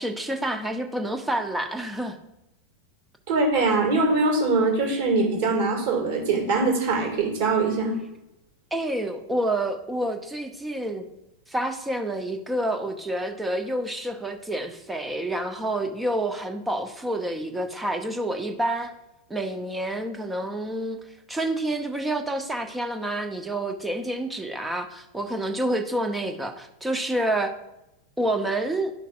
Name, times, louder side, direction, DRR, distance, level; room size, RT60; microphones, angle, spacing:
voice 1, 0.0-2.2 8.7-11.1 11.5-18.9 19.3-21.0 21.3-27.5 28.2-28.9, right 1 dB, 5° right, 6 dB, 0.7 m, -28 dB
voice 2, 3.3-8.0, right 3 dB, 50° right, 2 dB, 2.0 m, -22 dB
11.5 x 5.7 x 2.4 m, 0.90 s
figure-of-eight pair, 90°, 0 cm